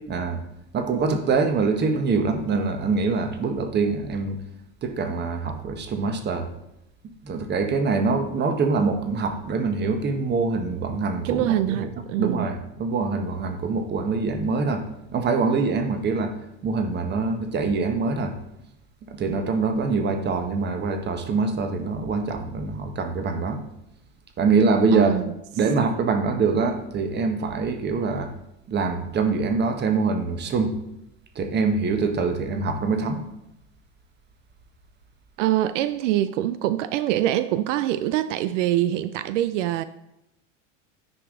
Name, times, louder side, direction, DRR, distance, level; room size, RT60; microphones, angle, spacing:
voice 1, 0.1-0.4 0.7-4.4 4.8-6.5 7.0-11.9 12.2-14.8 15.1-16.3 16.6-18.3 19.1-23.6 24.4-25.2 25.6-28.3 28.7-30.7 31.3-33.2, right 4 dB, 30° right, 1.1 m, -24 dB
voice 2, 11.2-12.5 24.9-25.3 35.4-39.8, right 13 dB, 80° right, 0.5 m, -24 dB
9.7 x 4.9 x 3.7 m
supercardioid pair, 115°, 37 cm